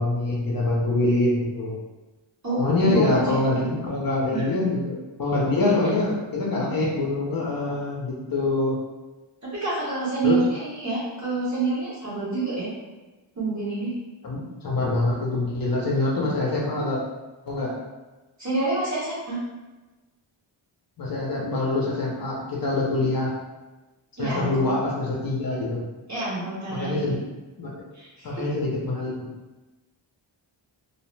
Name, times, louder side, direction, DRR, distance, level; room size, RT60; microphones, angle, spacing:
voice 1, 0.0-1.8 2.6-8.7 10.2-10.4 14.2-17.0 17.5-17.7 21.0-23.3 24.2-25.8 26.7-27.2 27.6-27.7 28.2-29.3, left 2 dB, 45° left, -4 dB, 0.6 m, -25 dB
voice 2, 2.4-3.6 4.3-4.6 5.6-6.0 9.4-12.7 13.3-13.9 18.4-19.4 24.2-24.7 26.1-27.1 27.9-28.4, right 3 dB, 35° right, -8 dB, 1.2 m, -28 dB
2.7 x 2.0 x 3.2 m, 1.1 s
wide cardioid pair, 110°, 49 cm